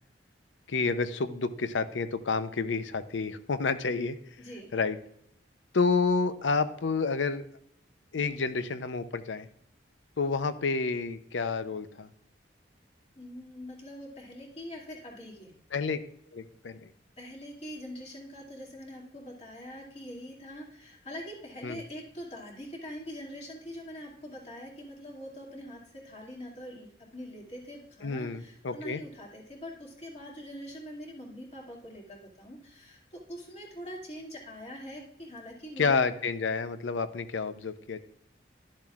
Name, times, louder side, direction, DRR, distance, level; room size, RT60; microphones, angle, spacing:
voice 1, 0.7-4.2 4.7-5.0 5.7-7.5 8.1-9.5 10.2-12.1 15.7-16.0 16.3-16.9 21.6-21.8 28.0-29.0 35.8-38.0, left 4 dB, 85° left, 12 dB, 0.6 m, -29 dB
voice 2, 4.4-4.7 13.1-15.5 17.2-36.1, equal, 35° left, -2 dB, 2.4 m, -43 dB
12.0 x 7.3 x 2.4 m, 0.69 s
head